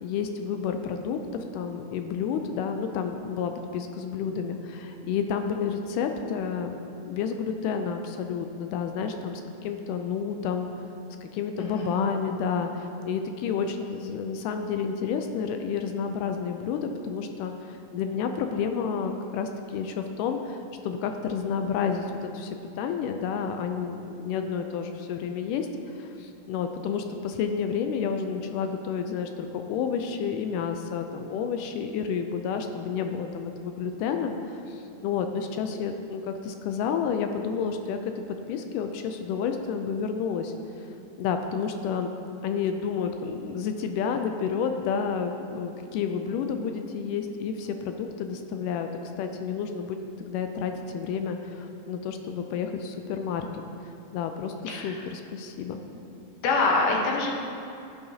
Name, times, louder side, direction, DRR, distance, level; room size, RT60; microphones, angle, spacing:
voice 1, 0.0-6.8 7.1-10.7 11.2-25.7 26.0-38.0 38.5-40.5 40.8-40.9 41.2-42.1 42.4-48.9 49.2-53.5 54.1-55.8, left 6 dB, 80° left, 6 dB, 2.0 m, -30 dB
voice 2, 11.6-12.0 54.7-55.0 56.4-57.3, left 3 dB, 65° left, 0 dB, 1.9 m, -25 dB
11.5 x 7.8 x 2.8 m, 2.7 s
omnidirectional pair, 3.8 m